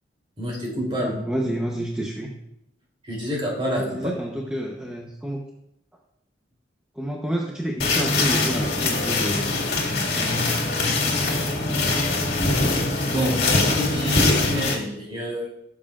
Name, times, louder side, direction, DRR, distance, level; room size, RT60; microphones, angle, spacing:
voice 1, 0.4-1.2 3.0-4.1 13.1-15.5, equal, 30° right, -3 dB, 3.2 m, -28 dB
voice 2, 0.9-2.3 3.7-5.4 6.9-10.7, equal, 5° right, -1 dB, 0.8 m, -29 dB
sound 1, 7.8-14.7, left 2 dB, 55° left, 2.1 m, -22 dB
16.0 x 7.5 x 2.5 m, 0.80 s
head